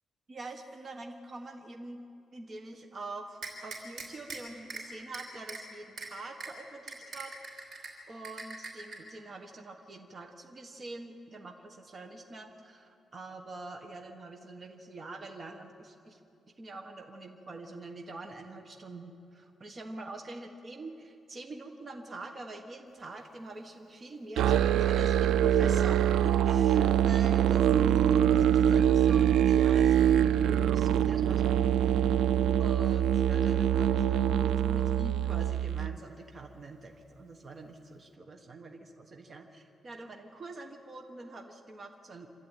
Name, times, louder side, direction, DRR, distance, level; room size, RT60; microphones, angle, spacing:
voice 1, 0.3-2.0 2.3-7.7 8.1-16.2 16.6-27.7 28.3-31.5 32.6-42.3, right 2 dB, 30° right, 3 dB, 1.4 m, -45 dB
sound 1, 3.4-4.4 4.7-4.8 5.1-5.6 6.0-6.1 6.4-6.5 6.9-7.9 8.2-9.0, right 4 dB, 60° right, 5.3 m, -40 dB
Musical instrument, 24.4-36.0, right 10 dB, 90° right, 0.5 m, -24 dB
27.0 x 13.5 x 9.2 m, 2.6 s
wide cardioid pair, 170°, 0 cm